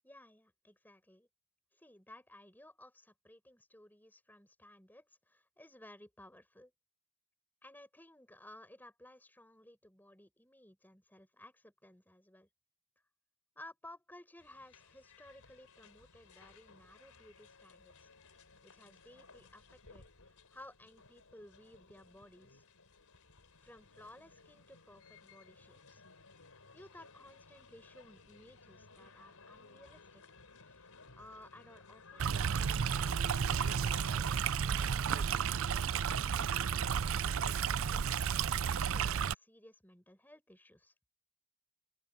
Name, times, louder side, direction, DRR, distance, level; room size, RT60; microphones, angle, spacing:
voice 1, 0.0-1.3 1.7-6.7 7.6-12.5 13.6-18.1 18.6-22.6 23.6-26.0 26.7-30.2 30.6-30.8 31.2-32.8 33.4-34.3 35.1-40.9, left 1 dB, 10° left, 6.2 m, -57 dB
sound 1, 14.4-34.2, left 4 dB, 90° left, 4.2 m, -58 dB
Stream, 32.2-39.3, right 7 dB, 65° right, 0.5 m, -32 dB
open air
head